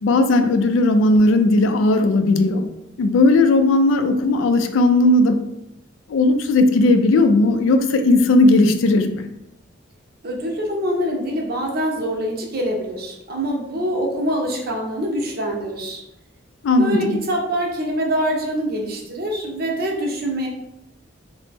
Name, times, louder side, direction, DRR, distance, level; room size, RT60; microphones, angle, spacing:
voice 1, 0.0-2.6 3.0-5.4 6.1-9.3 16.6-17.2, left 2 dB, 85° left, 8 dB, 0.3 m, -16 dB
voice 2, 10.2-16.0 16.8-20.5, equal, 55° right, 0 dB, 0.7 m, -24 dB
2.7 x 2.0 x 3.4 m, 0.86 s
head